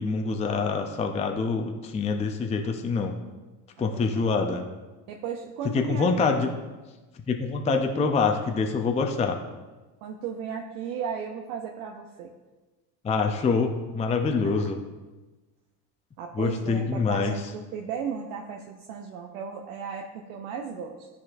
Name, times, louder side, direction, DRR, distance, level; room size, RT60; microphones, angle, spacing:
voice 1, 0.0-3.2 3.8-4.7 5.7-6.5 7.3-9.4 13.0-14.8 16.4-17.3, left 4 dB, 15° left, 4 dB, 0.4 m, -25 dB
voice 2, 3.9-4.3 5.1-6.4 10.0-12.3 14.4-14.5 16.2-21.1, right 6 dB, 85° right, 2 dB, 0.7 m, -35 dB
10.5 x 4.1 x 2.6 m, 1.2 s
supercardioid pair, 80°, 48 cm